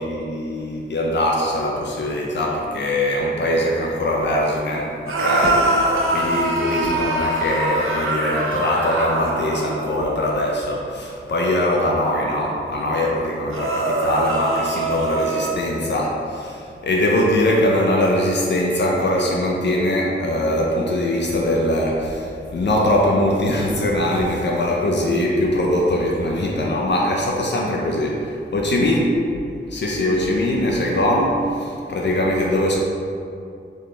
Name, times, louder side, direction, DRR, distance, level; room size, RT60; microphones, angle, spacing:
voice 1, 0.0-29.4 29.7-32.8, left 1 dB, 60° left, -2 dB, 0.5 m, -22 dB
sound 1, 5.1-9.8 13.5-15.5, right 2 dB, 85° right, 0.5 m, -22 dB
4.2 x 3.3 x 3.2 m, 2.5 s
wide cardioid pair, 155°, 21 cm